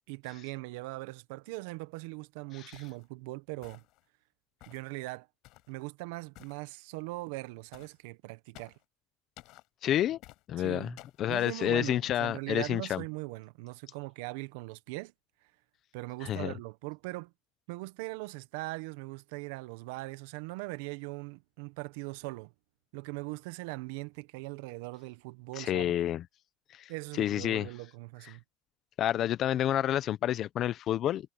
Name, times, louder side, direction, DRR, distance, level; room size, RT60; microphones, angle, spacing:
voice 1, 0.1-3.8 4.7-5.3 5.7-8.7 10.6-11.0 11.3-15.1 15.9-17.3 17.7-22.5 22.9-26.0 26.9-28.4, right 23 dB, 75° right, 1.2 m, -40 dB
sound 1, 2.7-3.0 3.6-4.0 4.6-4.9 5.4-5.7 6.3-6.6 7.7-8.0 8.5-8.8 9.4-9.7 10.2-10.4 11.0-11.2, left 20 dB, 60° left, 6.0 m, -54 dB
voice 2, 9.8-10.2 10.5-13.0 16.2-16.5 25.6-26.2 26.7-26.9 27.2-27.7 29.0-31.3, left 12 dB, 45° left, 1.0 m, -29 dB
supercardioid pair, 105°, 0 cm